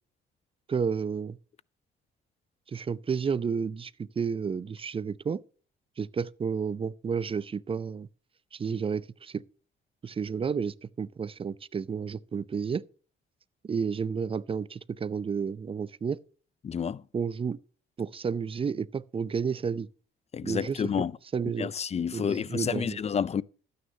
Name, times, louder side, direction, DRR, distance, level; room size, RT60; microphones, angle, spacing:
voice 1, 0.7-1.4 2.7-5.4 6.0-8.1 8.5-9.4 10.0-12.8 13.6-16.2 17.1-17.6 18.0-19.9 20.4-20.8 21.3-21.7 22.1-23.0, right 6 dB, 30° right, 0.5 m, -31 dB
voice 2, 16.6-17.0 20.3-21.1 21.6-23.4, left 7 dB, 35° left, 0.4 m, -29 dB
12.5 x 9.4 x 2.8 m
cardioid pair, 90°, 20 cm